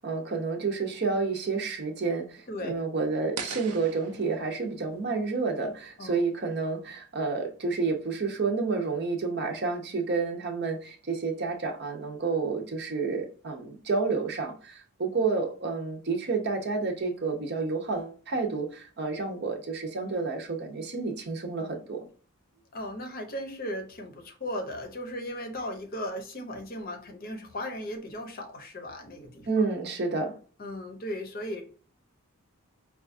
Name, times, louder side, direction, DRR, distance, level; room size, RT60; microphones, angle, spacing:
voice 1, 0.0-22.1 29.5-30.3, right 4 dB, 50° right, 0.7 m, -30 dB
voice 2, 2.5-2.8 6.0-6.3 22.7-29.5 30.6-31.6, left 1 dB, 40° left, 0.7 m, -36 dB
sound 1, 3.4-6.4, right 6 dB, 85° right, 0.6 m, -42 dB
5.0 x 2.3 x 2.5 m
head